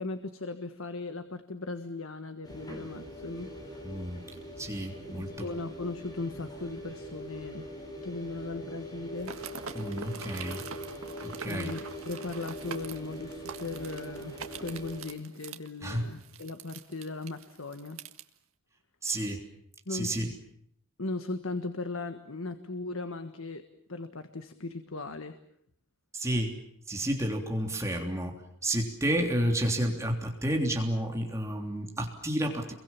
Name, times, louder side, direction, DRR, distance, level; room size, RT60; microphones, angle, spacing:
voice 1, 0.0-3.5 5.2-7.7 8.0-9.3 11.5-18.0 19.8-20.1 21.0-23.6 23.9-25.4, left 3 dB, 75° left, 9 dB, 1.5 m, -38 dB
sound 1, 2.4-15.0, equal, 20° left, 5.5 m, -43 dB
voice 2, 3.8-4.3 4.6-5.5 9.7-10.6 11.2-11.7 15.8-16.0 19.0-19.4 19.9-20.3 26.1-26.6 26.9-32.8, right 1 dB, 15° right, 2 dB, 3.4 m, -31 dB
sound 2, 9.2-18.2, right 6 dB, 80° right, 1.7 m, -44 dB
29.0 x 23.0 x 7.3 m, 0.68 s
head